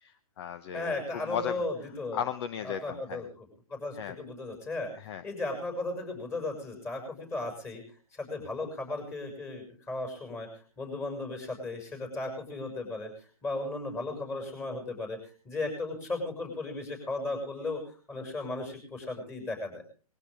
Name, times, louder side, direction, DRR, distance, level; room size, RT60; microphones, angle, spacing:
voice 1, 0.0-1.6 2.1-3.2 3.9-4.2 4.9-5.2, left 9 dB, 45° left, 12 dB, 1.0 m, -36 dB
voice 2, 0.7-2.2 2.6-3.3 3.7-4.9 5.2-7.8 8.1-10.5 10.8-13.1 13.4-15.2 15.4-17.8 18.1-19.8, left 2 dB, 15° left, 3 dB, 6.6 m, -35 dB
20.5 x 16.5 x 3.6 m, 0.38 s
hypercardioid pair, 145°, 18 cm